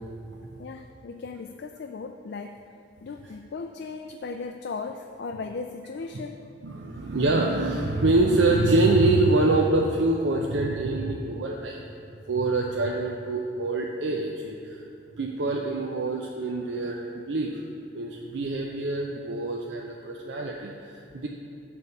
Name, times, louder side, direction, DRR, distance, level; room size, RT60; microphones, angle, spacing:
voice 1, 0.6-2.6 3.0-6.4, left 4 dB, 60° left, 5 dB, 0.4 m, -37 dB
voice 2, 6.6-11.8 12.3-14.8 15.2-17.5 17.9-21.3, right 2 dB, 75° right, 0 dB, 0.6 m, -25 dB
10.5 x 3.6 x 7.0 m, 2.6 s
head